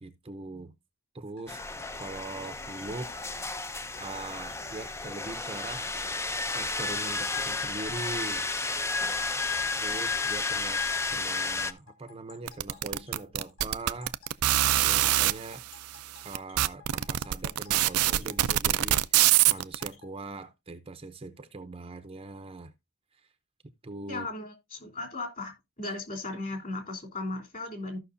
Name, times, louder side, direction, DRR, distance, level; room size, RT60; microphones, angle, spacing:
voice 1, 0.0-0.7 1.1-1.6 1.9-3.1 4.0-5.9 6.5-8.5 9.8-10.8 11.1-14.5 14.8-15.6 16.2-22.7 23.1-23.3 23.8-24.3, right 2 dB, 25° right, 0.7 m, -41 dB
sound 1, 1.4-20.1, left 9 dB, 60° left, 5.3 m, -54 dB
sound 2, 1.5-11.7, left 3 dB, 10° left, 0.5 m, -32 dB
sound 3, 12.5-15.3 16.0-16.1 16.3-19.9, right 14 dB, 75° right, 0.5 m, -23 dB
voice 2, 24.1-28.0, left 2 dB, 40° left, 3.3 m, -36 dB
15.0 x 5.9 x 2.6 m
head